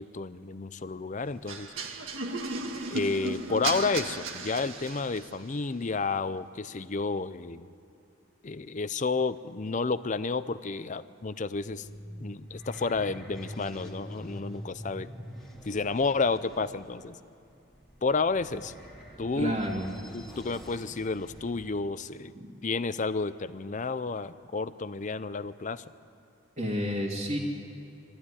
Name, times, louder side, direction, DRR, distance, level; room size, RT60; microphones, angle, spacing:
voice 1, 0.0-1.7 2.9-7.7 8.4-11.9 12.2-15.1 15.6-17.2 18.0-18.7 19.2-19.6 20.1-22.3 22.6-25.8, left 4 dB, 35° left, 14 dB, 0.5 m, -31 dB
sound 1, 1.5-5.4, right 3 dB, 70° right, 1.8 m, -35 dB
sound 2, 11.3-21.8, equal, ahead, 2.4 m, -45 dB
voice 2, 19.4-19.9 22.4-22.5 26.6-27.4, equal, 35° right, -5 dB, 2.2 m, -30 dB
23.5 x 14.5 x 9.9 m, 2.6 s
head